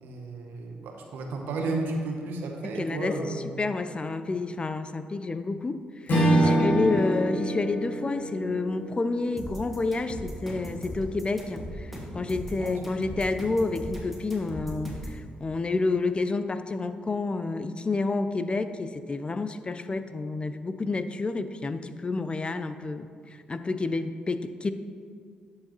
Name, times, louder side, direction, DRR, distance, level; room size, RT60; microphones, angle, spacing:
voice 1, 0.0-3.5 6.3-6.6 12.6-12.9, right 2 dB, 80° right, 2 dB, 0.8 m, -33 dB
voice 2, 2.8-3.2 3.6-23.1 23.5-24.7, left 3 dB, 30° left, 10 dB, 0.4 m, -29 dB
Strum, 6.1-10.7, right 1 dB, 60° left, 1.8 m, -27 dB
sound 1, 9.4-15.2, equal, ahead, 1.8 m, -38 dB
11.0 x 4.7 x 3.0 m, 2.1 s
supercardioid pair, 55°, 3 cm